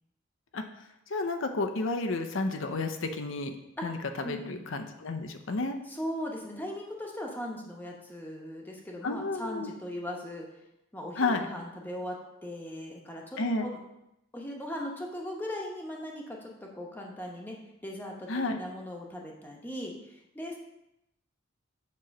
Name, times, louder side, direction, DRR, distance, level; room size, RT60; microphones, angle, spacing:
voice 1, 1.1-3.6 3.8-5.8 9.0-9.7 11.2-11.5 13.4-13.7 18.3-18.6, left 3 dB, 80° left, 6 dB, 0.7 m, -31 dB
voice 2, 4.2-4.7 5.8-10.5 10.9-13.8 14.3-20.6, equal, 10° left, -1 dB, 0.9 m, -39 dB
7.5 x 3.1 x 5.9 m, 0.85 s
head